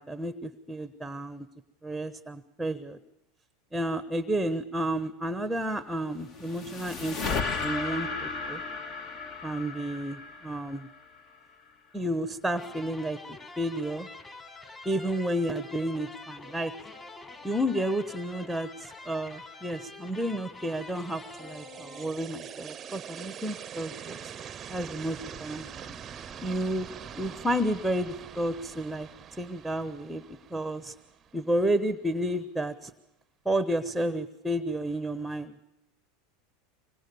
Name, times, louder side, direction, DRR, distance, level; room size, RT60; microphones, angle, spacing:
voice 1, 0.0-1.5 1.8-3.0 3.7-8.6 9.4-10.9 11.9-14.1 14.8-16.7 17.4-24.2 24.7-26.0 26.4-26.9 27.2-29.1 29.4-30.9 31.3-32.9 33.4-35.5, right 1 dB, 5° right, 11 dB, 1.0 m, -31 dB
sound 1, 6.0-11.4, left 4 dB, 45° left, 2.0 m, -35 dB
sound 2, 12.5-22.5, left 3 dB, 20° left, 3.9 m, -46 dB
sound 3, 20.6-31.7, right 8 dB, 30° right, 0.7 m, -44 dB
24.5 x 19.0 x 7.0 m, 0.88 s
hypercardioid pair, 100°, 0 cm